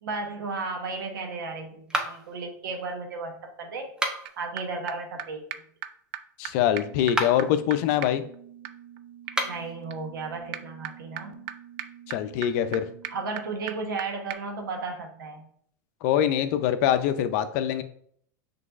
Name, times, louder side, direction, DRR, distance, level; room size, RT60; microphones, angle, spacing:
voice 1, 0.0-3.9 4.4-5.7 9.4-11.4 13.1-15.4, right 3 dB, 85° right, 3 dB, 1.0 m, -34 dB
sound 1, 1.9-2.4 3.9-4.5 7.0-7.5 9.2-9.7, right 1 dB, 5° right, 0.6 m, -30 dB
sound 2, 4.3-4.4 4.6-4.7 4.9-5.0 5.2-5.3 5.5-5.6 5.8-5.9 6.1-6.2 6.4-6.5 6.8-14.0 14.3-14.4, right 12 dB, 50° right, 0.4 m, -40 dB
voice 2, 6.4-8.2 12.1-12.9 16.0-17.8, left 10 dB, 55° left, 11 dB, 0.5 m, -24 dB
5.8 x 3.3 x 2.5 m, 0.63 s
hypercardioid pair, 125°, 11 cm